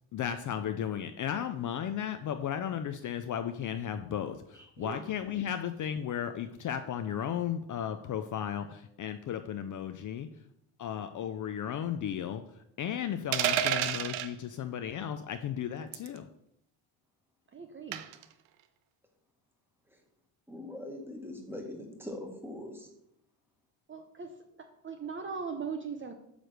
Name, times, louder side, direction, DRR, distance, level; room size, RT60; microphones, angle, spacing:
voice 1, 0.1-10.3 10.8-12.4 12.8-16.3, left 9 dB, 45° left, 9 dB, 0.5 m, -35 dB
sound 1, 13.3-14.3 15.9-16.2 17.9-18.2, right 10 dB, 90° right, 0.7 m, -29 dB
voice 2, 17.5-18.1 23.9-24.3 24.8-26.1, right 5 dB, 25° right, 5 dB, 0.6 m, -39 dB
voice 3, 20.5-22.9, left 1 dB, 5° right, 1 dB, 1.5 m, -42 dB
8.9 x 3.3 x 6.4 m, 0.77 s
cardioid pair, 125°, 45 cm